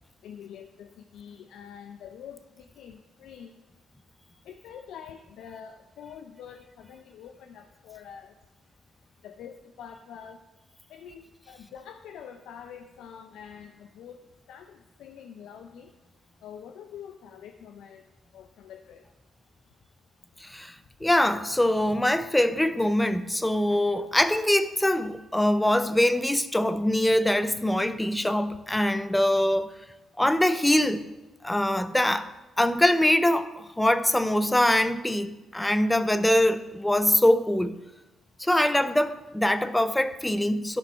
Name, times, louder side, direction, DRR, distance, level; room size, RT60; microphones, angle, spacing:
voice 1, 0.2-3.5 4.5-8.3 9.2-10.4 10.9-14.2 14.5-15.9 16.4-18.0 18.3-19.0, left 8 dB, 80° left, 0.5 m, -45 dB
voice 2, 20.4-20.8 21.0-29.7 30.2-31.0 31.4-32.3 32.6-37.8 38.4-40.8, left 1 dB, 10° left, 0.5 m, -23 dB
11.5 x 5.3 x 4.4 m
cardioid pair, 90°, 0 cm